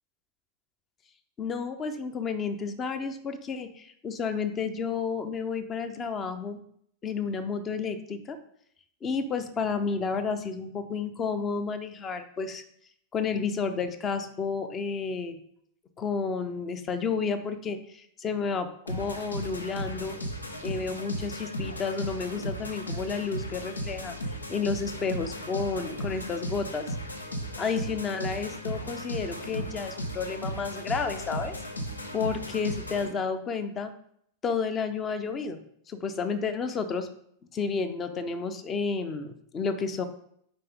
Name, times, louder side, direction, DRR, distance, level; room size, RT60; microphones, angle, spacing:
voice 1, 1.4-6.6 7.0-8.4 9.0-12.6 13.1-15.4 16.0-20.2 20.6-24.1 24.5-27.0 27.6-31.5 32.1-33.9 34.4-37.1 37.5-40.0, left 5 dB, 25° left, 9 dB, 0.7 m, -31 dB
sound 1, 18.9-33.1, equal, 80° left, 0.8 m, -36 dB
6.7 x 5.1 x 3.6 m, 0.69 s
figure-of-eight pair, 90°, 0 cm